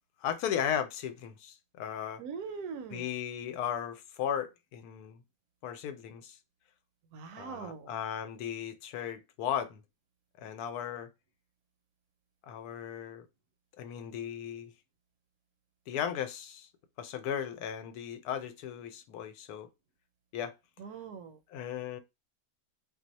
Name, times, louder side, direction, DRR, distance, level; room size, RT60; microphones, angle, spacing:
voice 1, 0.2-2.2 2.9-5.2 5.6-6.4 7.4-9.8 10.4-11.1 12.5-13.3 13.8-14.7 15.9-16.7 17.0-19.7 20.3-20.5 21.5-22.0, left 9 dB, 85° left, 1.1 m, -36 dB
voice 2, 2.2-3.0 7.1-7.9 20.8-21.4, right 5 dB, 80° right, 1.0 m, -41 dB
2.7 x 2.0 x 3.9 m
omnidirectional pair, 1.6 m